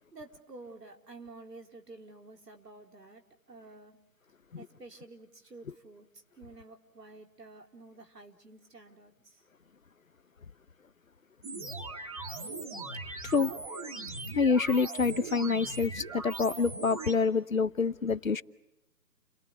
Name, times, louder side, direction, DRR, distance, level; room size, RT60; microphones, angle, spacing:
voice 1, 0.1-3.2 3.5-4.0 4.6-6.1 6.4-9.4, right 2 dB, 75° right, 4.5 m, -50 dB
sound 1, 11.4-17.1, right 3 dB, 20° right, 2.0 m, -39 dB
voice 2, 14.3-18.4, left 5 dB, 55° left, 1.0 m, -27 dB
29.5 x 22.5 x 8.0 m
figure-of-eight pair, 170°, 48 cm